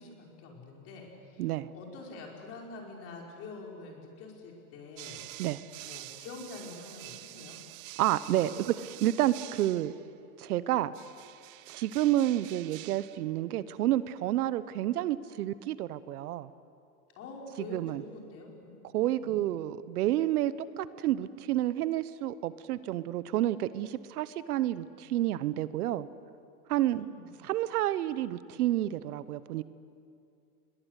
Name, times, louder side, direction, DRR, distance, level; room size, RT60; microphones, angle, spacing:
voice 1, 0.0-1.5 1.7-5.2 5.8-7.6 17.2-19.4 27.0-27.2, left 3 dB, 30° left, 0 dB, 5.2 m, -46 dB
voice 2, 1.4-1.7 5.4-5.6 8.0-9.9 10.4-10.9 11.7-16.5 17.6-18.0 18.9-26.1 26.7-27.1 27.4-29.6, right 13 dB, 75° right, 16 dB, 1.1 m, -29 dB
sound 1, 5.0-10.1 10.9-13.3, right 18 dB, 40° right, 0.5 m, -47 dB
29.5 x 22.0 x 8.2 m, 2.4 s
supercardioid pair, 160°, 46 cm